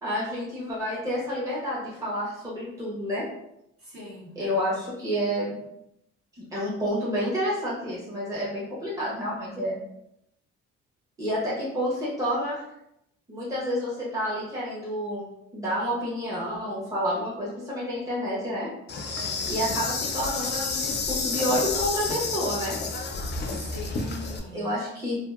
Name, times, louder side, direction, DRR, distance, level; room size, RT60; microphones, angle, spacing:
voice 1, 0.0-3.2 4.3-5.6 6.5-9.8 11.2-12.6 13.3-15.2 15.5-18.7 19.5-22.8 24.5-25.2, equal, 10° right, -8 dB, 1.0 m, -29 dB
voice 2, 3.8-4.3 19.0-19.5 23.4-24.7, left 1 dB, 45° right, -7 dB, 1.5 m, -42 dB
Insect, 18.9-24.4, left 4 dB, 35° left, 0.4 m, -30 dB
2.7 x 2.5 x 2.4 m, 0.79 s
cardioid pair, 90°, 30 cm